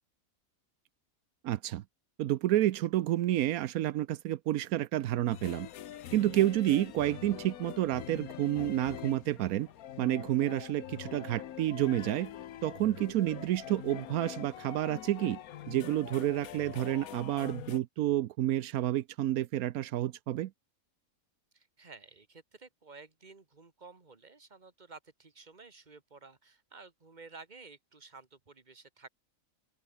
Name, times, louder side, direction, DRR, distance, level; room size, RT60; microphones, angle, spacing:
voice 1, 1.4-1.8 2.2-5.7 6.1-9.7 10.0-12.3 12.6-15.4 15.7-20.5, right 13 dB, 85° right, 1.1 m, -30 dB
sound 1, 5.3-17.8, left 11 dB, 85° left, 1.3 m, -44 dB
voice 2, 21.5-29.1, right 4 dB, 30° right, 2.1 m, -53 dB
omnidirectional pair, 1.5 m